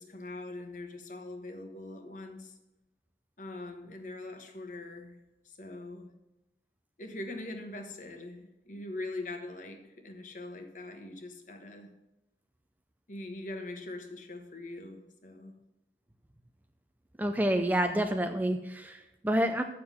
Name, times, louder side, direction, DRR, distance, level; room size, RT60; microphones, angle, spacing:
voice 1, 0.0-2.5 3.4-5.2 5.4-6.1 7.0-11.9 13.1-15.5, left 2 dB, 45° left, 5 dB, 1.2 m, -42 dB
voice 2, 17.2-19.6, right 1 dB, 10° right, 6 dB, 0.4 m, -28 dB
7.5 x 6.7 x 6.9 m, 0.97 s
head